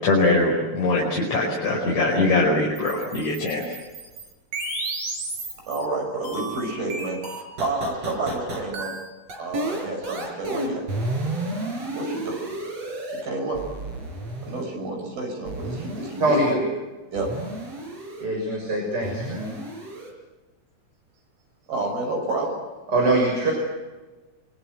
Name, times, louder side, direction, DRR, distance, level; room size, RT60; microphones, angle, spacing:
voice 1, 0.0-3.6, left 2 dB, 45° left, -3 dB, 6.2 m, -22 dB
sound 1, 2.8-5.8 6.2-13.2 13.5-14.6 15.5-16.5 17.2-18.3 19.0-20.1, right 2 dB, 40° right, 5.9 m, -32 dB
voice 2, 5.6-8.9 9.3-10.8 11.9-12.4 13.1-13.6 14.4-16.7 17.1-17.3 21.7-22.6, right 2 dB, 65° right, 2 dB, 8.0 m, -29 dB
voice 3, 16.2-16.6 18.2-19.5 22.9-23.5, right 2 dB, 25° right, 0 dB, 6.4 m, -23 dB
25.5 x 25.0 x 8.0 m, 1.2 s
omnidirectional pair, 4.5 m